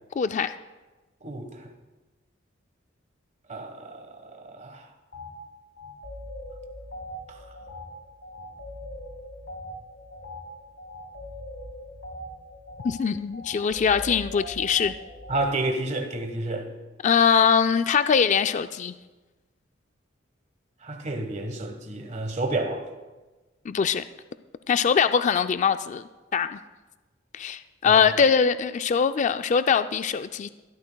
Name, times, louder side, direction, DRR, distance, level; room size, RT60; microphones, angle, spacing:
voice 1, 0.2-0.5 12.8-14.9 17.0-18.9 23.7-24.0 24.7-26.0 26.3-26.6 27.3-30.5, left 6 dB, 40° left, 11 dB, 0.3 m, -22 dB
voice 2, 3.5-4.8 15.3-16.7 20.8-22.8 27.8-28.1, right 2 dB, 40° right, 5 dB, 1.3 m, -30 dB
sound 1, 5.1-5.3 5.8-15.5, left 1 dB, 80° left, 3.3 m, -41 dB
22.0 x 12.5 x 2.3 m, 1.2 s
head